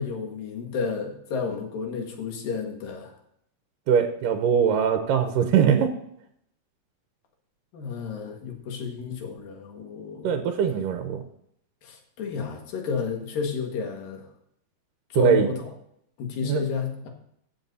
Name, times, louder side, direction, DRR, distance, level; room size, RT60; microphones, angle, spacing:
voice 1, 0.0-3.1 7.7-10.4 11.8-14.2 15.1-15.6 16.2-17.1, left 5 dB, 90° left, 2 dB, 3.3 m, -31 dB
voice 2, 3.9-5.9 10.2-11.2 15.1-15.5 16.4-16.6, right 8 dB, 80° right, 5 dB, 2.4 m, -22 dB
16.0 x 7.4 x 2.7 m, 0.71 s
omnidirectional pair, 3.9 m